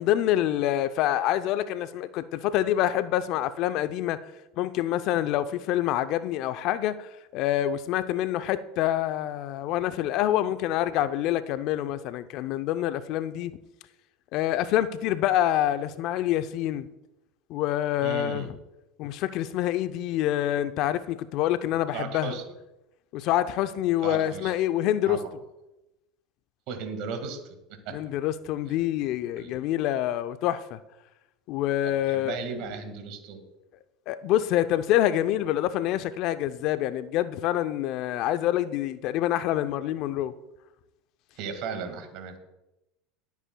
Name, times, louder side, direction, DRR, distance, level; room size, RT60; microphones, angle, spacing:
voice 1, 0.0-4.2 4.6-13.5 14.3-16.9 17.5-18.5 19.0-22.3 23.1-25.2 27.9-30.8 31.5-32.4 34.1-40.3, left 12 dB, 60° left, 0.6 m, -26 dB
voice 2, 18.0-18.5 21.9-22.4 24.0-24.5 25.1-25.3 26.7-28.0 29.4-29.6 31.8-33.4 41.4-42.3, right 5 dB, 60° right, 1.9 m, -36 dB
21.5 x 8.3 x 2.3 m
hypercardioid pair, 85°, 0 cm